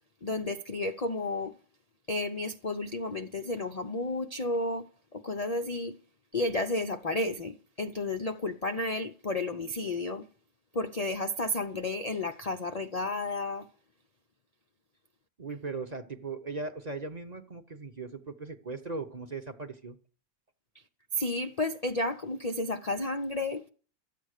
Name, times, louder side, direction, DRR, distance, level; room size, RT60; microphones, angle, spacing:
voice 1, 0.2-1.5 2.1-6.0 6.3-10.2 10.7-13.7 21.1-23.7, left 2 dB, 50° left, 0.4 m, -32 dB
voice 2, 15.4-20.0, right 3 dB, 30° right, 0.9 m, -38 dB
13.5 x 8.5 x 6.5 m
omnidirectional pair, 1.6 m